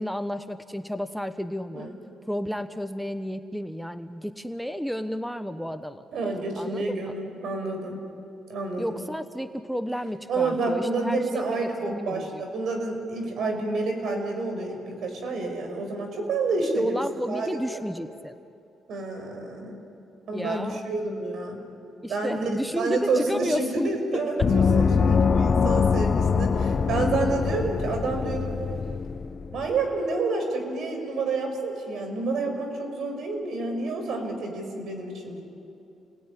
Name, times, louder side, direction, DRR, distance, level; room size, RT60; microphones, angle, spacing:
voice 1, 0.0-1.9 2.3-6.0 6.6-7.2 8.8-12.4 16.8-18.4 20.3-20.8 22.0-23.9 24.4-24.5, equal, ahead, 9 dB, 1.0 m, -32 dB
voice 2, 6.1-8.0 8.5-9.0 10.3-16.9 17.3-17.8 18.9-19.8 20.3-21.6 22.1-22.5 22.8-28.5 29.5-35.4, right 3 dB, 70° right, 4 dB, 6.0 m, -29 dB
Gong, 24.4-29.7, left 5 dB, 45° left, 0.8 m, -23 dB
29.5 x 19.5 x 10.0 m, 2.7 s
cardioid pair, 90°, 0 cm